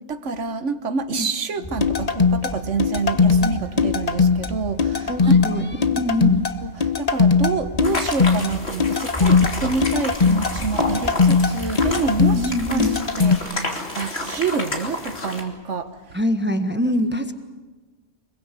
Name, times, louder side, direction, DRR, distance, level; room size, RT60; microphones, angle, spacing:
voice 1, 0.1-5.6 6.6-6.7 7.0-12.9 13.2-16.2, right 4 dB, 85° right, 11 dB, 1.6 m, -27 dB
sound 1, 1.6-13.0, left 1 dB, 10° left, 2.2 m, -37 dB
sound 2, 1.8-13.4, left 5 dB, 35° left, 1.2 m, -19 dB
voice 2, 5.1-6.5 12.2-13.0 16.1-17.3, equal, 10° right, 8 dB, 1.3 m, -24 dB
sound 3, 7.8-15.4, left 1 dB, 60° left, 3.4 m, -30 dB
25.5 x 22.5 x 8.4 m, 1.3 s
omnidirectional pair, 1.2 m